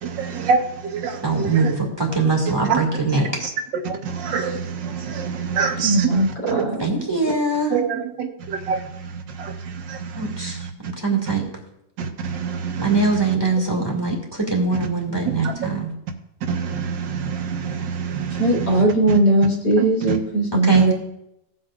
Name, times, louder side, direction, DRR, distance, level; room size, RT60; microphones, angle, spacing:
voice 1, 0.0-1.7 2.7-2.8 3.8-6.7 7.7-10.7 12.0-13.1 15.4-15.5 16.4-19.2 19.8-20.2 20.7-20.8, right 6 dB, 85° right, 4 dB, 1.7 m, -26 dB
voice 2, 1.2-3.3 6.8-7.8 10.2-11.4 12.8-15.9 20.6-20.9, right 3 dB, 15° right, -2 dB, 2.1 m, -22 dB
voice 3, 5.8-6.8 18.4-20.9, right 2 dB, 70° left, -3 dB, 3.3 m, -19 dB
17.0 x 7.9 x 2.5 m, 0.83 s
omnidirectional pair, 1.9 m